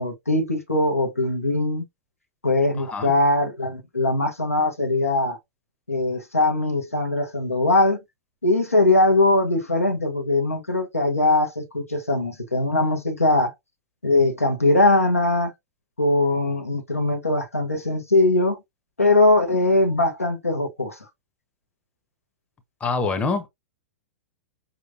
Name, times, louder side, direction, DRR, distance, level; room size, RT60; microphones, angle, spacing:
voice 1, 0.0-1.8 2.4-5.4 5.9-8.0 8.4-13.5 14.0-15.5 16.0-18.6 19.0-21.0, left 2 dB, 85° left, 1.0 m, -21 dB
voice 2, 2.8-3.1 22.8-23.5, left 4 dB, 15° left, 0.8 m, -25 dB
5.0 x 3.0 x 2.5 m
figure-of-eight pair, 100°, 8 cm